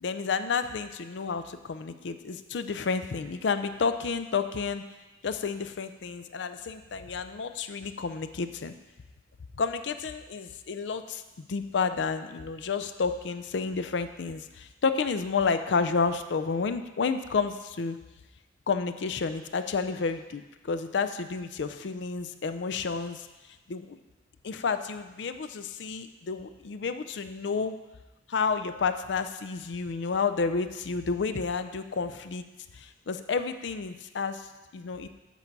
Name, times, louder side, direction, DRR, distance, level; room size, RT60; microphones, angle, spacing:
voice 1, 0.0-4.8 5.2-8.7 9.5-11.2 11.5-18.0 18.7-23.3 23.7-24.0 24.4-27.8 28.3-32.4 32.7-35.1, left 5 dB, 65° left, 10 dB, 0.5 m, -30 dB
8.2 x 4.6 x 5.3 m, 1.1 s
head